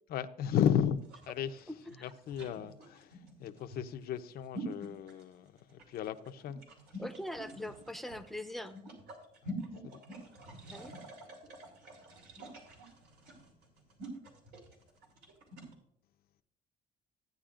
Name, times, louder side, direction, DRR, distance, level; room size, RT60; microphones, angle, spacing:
voice 1, 0.1-1.0 1.3-1.5 2.0-3.1 3.4-6.6 9.8-10.0, left 9 dB, 65° left, 0.7 m, -34 dB
sound 1, 1.0-15.7, equal, 75° right, 3.5 m, -47 dB
voice 2, 7.0-8.8 10.7-10.9, left 1 dB, ahead, 0.8 m, -42 dB
15.5 x 9.4 x 2.5 m
cardioid pair, 110°, 17 cm